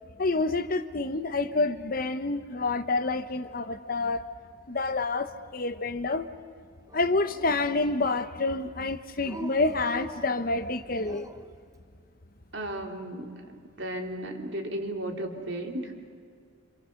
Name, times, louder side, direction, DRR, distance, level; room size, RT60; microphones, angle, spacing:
voice 1, 0.2-4.2 4.7-6.3 6.9-11.3, left 3 dB, 45° left, 1.0 m, -28 dB
Dog, 6.9-8.4 9.2-11.6, right 1 dB, 15° right, 0.9 m, -45 dB
voice 2, 12.5-15.9, right 1 dB, 60° right, 2.9 m, -35 dB
27.0 x 27.0 x 6.6 m
head